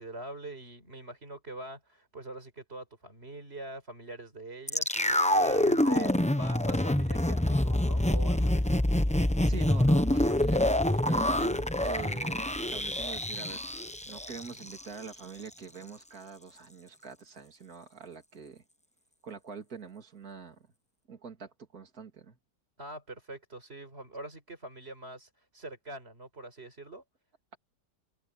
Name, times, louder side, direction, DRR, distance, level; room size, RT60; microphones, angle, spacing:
voice 1, 0.0-8.7 22.8-27.0, right 2 dB, 35° right, 5.1 m, -44 dB
sound 1, 4.7-14.8 15.1-15.2, left 1 dB, 5° left, 0.6 m, -26 dB
voice 2, 9.4-18.6 19.2-20.7 21.1-22.4, right 5 dB, 55° right, 3.3 m, -44 dB
omnidirectional pair, 1.9 m